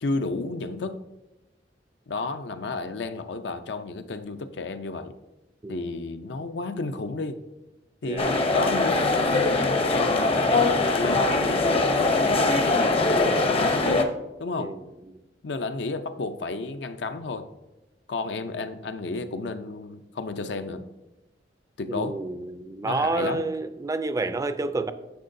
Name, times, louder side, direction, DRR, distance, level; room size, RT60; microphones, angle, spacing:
voice 1, 0.0-1.0 2.1-5.1 5.7-7.4 8.0-14.1 14.4-14.7 15.4-17.5 18.1-20.8 21.8-22.2 22.8-23.4, left 3 dB, 75° left, 0.5 m, -32 dB
sound 1, 8.2-14.0, left 3 dB, 35° left, 0.6 m, -22 dB
voice 2, 21.9-24.9, right 2 dB, 20° right, 0.4 m, -29 dB
10.5 x 6.7 x 2.6 m
head